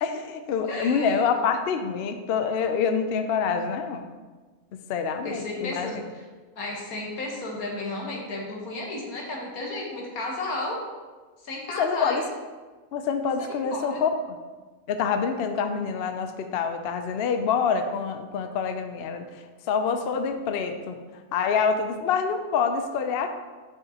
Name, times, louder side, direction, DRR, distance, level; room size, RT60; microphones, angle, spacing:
voice 1, 0.0-4.0 4.9-6.0 11.8-12.2 12.9-14.1 14.9-19.2 19.7-21.0 21.3-23.4, left 6 dB, 65° left, 7 dB, 0.6 m, -26 dB
voice 2, 0.7-1.3 5.2-6.2 6.6-10.8 11.4-12.2 13.4-14.0, left 2 dB, 90° left, -1 dB, 1.6 m, -33 dB
6.4 x 6.0 x 2.8 m, 1.3 s
omnidirectional pair, 1.5 m